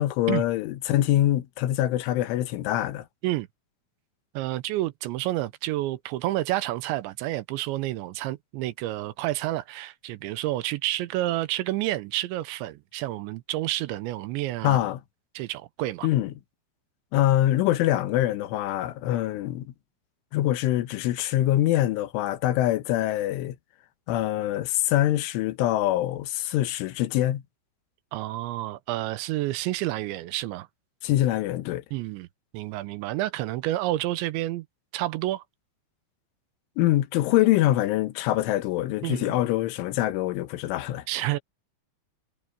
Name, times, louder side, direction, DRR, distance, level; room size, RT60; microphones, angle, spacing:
voice 1, 0.0-3.1 14.6-15.0 16.0-16.3 17.1-19.7 20.3-23.6 24.1-27.4 31.0-31.8 36.8-41.1, left 14 dB, 90° left, 3.7 m, -24 dB
voice 2, 4.3-14.8 15.4-16.1 28.1-30.7 31.9-32.3 32.5-34.7 34.9-35.4 39.0-39.4 41.1-41.4, right 16 dB, 80° right, 3.0 m, -29 dB
omnidirectional pair, 5.4 m